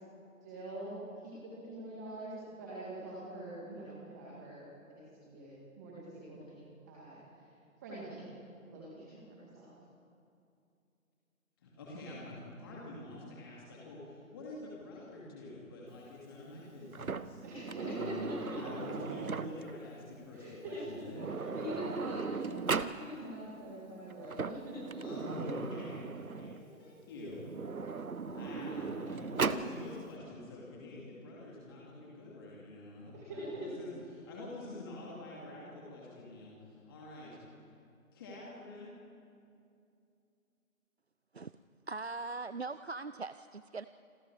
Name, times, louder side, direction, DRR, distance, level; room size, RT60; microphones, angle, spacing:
voice 1, 0.4-4.6 4.9-7.5 7.8-8.3 8.6-9.7 17.4-18.5 18.9-19.0 20.3-25.0 33.1-33.9, right 1 dB, 10° right, -7 dB, 2.5 m, -44 dB
voice 2, 11.6-17.4 17.8-18.3 18.6-22.1 24.9-27.4 27.9-37.3 38.1-38.9, left 2 dB, 15° left, -5 dB, 2.7 m, -46 dB
Sliding door, 16.9-19.8 20.8-20.9 21.1-23.0 24.1-26.6 27.4-29.7, right 5 dB, 80° right, 1.2 m, -37 dB
voice 3, 41.9-43.9, right 3 dB, 50° right, 13 dB, 0.5 m, -40 dB
27.5 x 27.0 x 4.9 m, 2.6 s
figure-of-eight pair, 165°, 42 cm